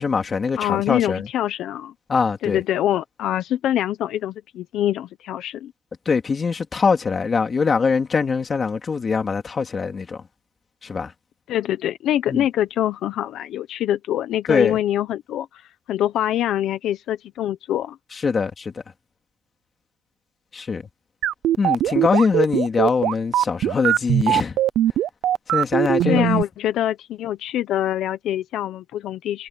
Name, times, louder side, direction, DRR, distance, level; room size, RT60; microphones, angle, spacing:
voice 1, 0.0-1.2 2.1-2.6 6.1-10.2 10.8-11.1 12.3-12.4 14.5-14.8 18.2-18.7 20.5-20.8 21.6-24.6 25.5-26.4, left 5 dB, 30° left, 2.4 m, -22 dB
voice 2, 0.6-1.9 2.4-5.7 11.5-18.0 26.1-29.5, left 12 dB, 65° left, 1.0 m, -24 dB
sound 1, 21.2-26.4, right 12 dB, 65° right, 0.5 m, -20 dB
cardioid pair, 140°, 0 cm